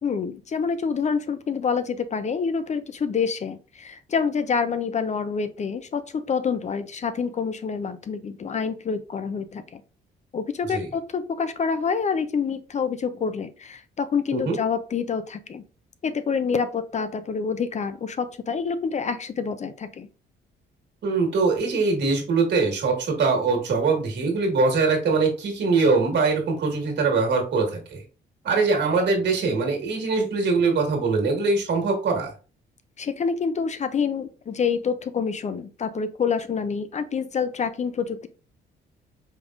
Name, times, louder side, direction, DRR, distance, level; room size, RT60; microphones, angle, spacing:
voice 1, 0.0-9.8 10.3-15.6 16.0-20.1 33.0-38.3, left 6 dB, 35° left, 11 dB, 0.5 m, -27 dB
voice 2, 21.0-28.0 28.4-32.3, right 4 dB, 60° right, 2 dB, 1.8 m, -22 dB
5.2 x 3.5 x 2.5 m, 0.36 s
cardioid pair, 90°, 20 cm